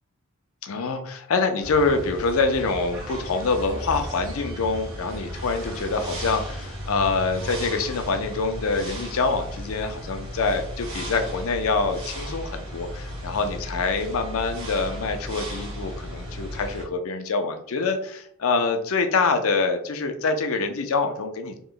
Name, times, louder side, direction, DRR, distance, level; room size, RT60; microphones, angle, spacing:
voice 1, 0.6-21.6, left 4 dB, 75° left, 7 dB, 0.5 m, -25 dB
sound 1, 1.6-16.8, equal, 75° right, 1.2 m, -35 dB
3.0 x 2.1 x 3.7 m, 0.65 s
head